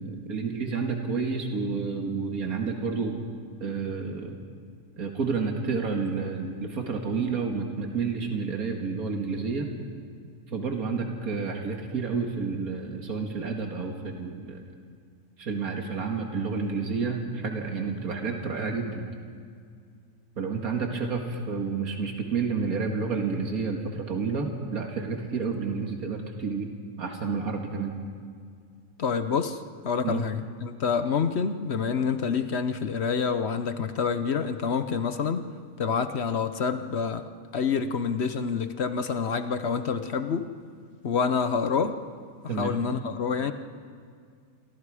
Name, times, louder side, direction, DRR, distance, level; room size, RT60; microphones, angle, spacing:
voice 1, 0.0-3.3 3.6-4.4 5.0-9.7 10.5-14.6 15.4-19.1 20.4-26.7 27.0-28.0 30.0-30.3 42.5-42.7, right 4 dB, 90° right, 2 dB, 2.3 m, -30 dB
voice 2, 29.0-35.4 35.8-37.3 37.5-40.5 41.0-42.0 42.6-43.5, left 6 dB, 55° left, 10 dB, 1.1 m, -27 dB
28.0 x 24.0 x 4.9 m, 2.2 s
omnidirectional pair, 1.5 m